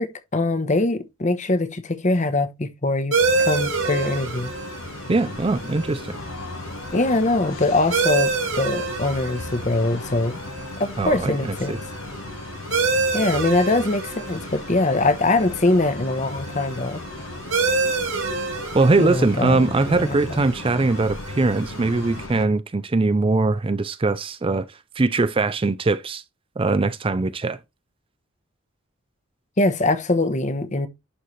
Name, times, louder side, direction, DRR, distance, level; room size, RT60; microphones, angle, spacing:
voice 1, 0.0-4.5 6.9-10.4 10.8-11.7 13.1-17.0 19.0-20.4 29.6-30.9, left 2 dB, 35° left, 0.9 m, -23 dB
sound 1, 3.1-22.5, left 2 dB, 90° left, 1.2 m, -36 dB
sound 2, 3.1-22.3, right 4 dB, 65° right, 2.6 m, -29 dB
voice 2, 5.1-6.2 11.0-11.8 18.7-26.2 26.6-27.6, right 3 dB, 25° right, 0.4 m, -21 dB
11.0 x 4.2 x 3.2 m
head